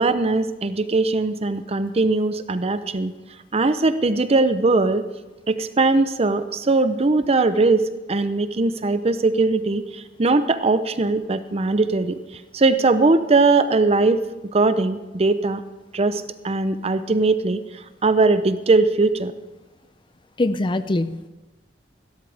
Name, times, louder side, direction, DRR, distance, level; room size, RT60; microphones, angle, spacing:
voice 1, 0.0-3.1 3.5-5.1 5.5-12.2 12.5-14.3 14.5-15.6 15.9-17.6 18.0-19.3, right 3 dB, 35° right, 11 dB, 0.6 m, -20 dB
voice 2, 20.4-21.3, left 2 dB, 25° left, 12 dB, 0.5 m, -23 dB
15.5 x 13.0 x 3.4 m, 1.1 s
head